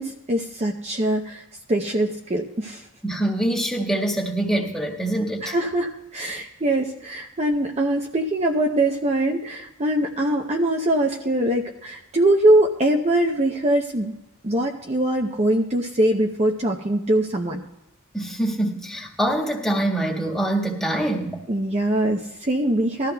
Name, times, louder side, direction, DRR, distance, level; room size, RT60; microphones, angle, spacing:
voice 1, 0.0-1.4 1.7-2.8 5.4-14.2 14.4-17.6 21.5-23.1, right 1 dB, 30° right, 1 dB, 0.7 m, -22 dB
voice 2, 3.0-5.6 18.1-21.4, right 1 dB, 5° left, -2 dB, 1.5 m, -24 dB
20.0 x 14.0 x 2.2 m, 0.90 s
head